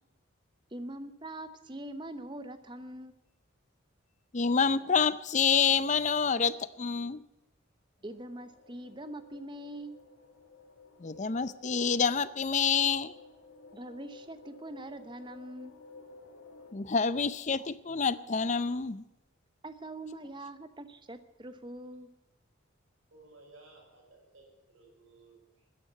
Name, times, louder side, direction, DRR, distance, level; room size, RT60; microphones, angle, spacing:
voice 1, 0.7-3.2 8.0-10.0 13.7-15.7 19.6-22.1, right 1 dB, 20° right, 11 dB, 0.9 m, -43 dB
voice 2, 4.3-7.2 11.0-13.1 16.7-19.0, left 6 dB, 35° left, 16 dB, 0.5 m, -27 dB
sound 1, 8.1-16.7, left 3 dB, 75° left, 1.9 m, -54 dB
voice 3, 23.1-25.7, right 2 dB, 65° right, 0 dB, 6.1 m, -57 dB
13.5 x 10.5 x 9.3 m, 0.92 s
head